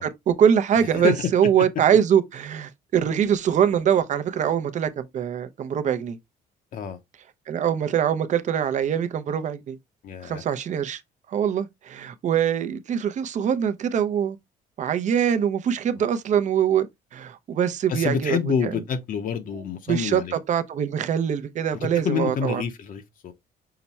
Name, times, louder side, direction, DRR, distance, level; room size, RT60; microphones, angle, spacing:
voice 1, 0.0-6.2 7.5-9.8 10.2-11.0 11.3-14.4 14.8-16.9 17.1-18.7 19.5-20.2 20.5-22.6, right 8 dB, 45° right, 0.6 m, -23 dB
voice 2, 10.0-10.4 17.9-20.3 21.8-23.3, left 7 dB, 55° left, 0.7 m, -27 dB
5.8 x 2.2 x 4.1 m
cardioid pair, 110°, 17 cm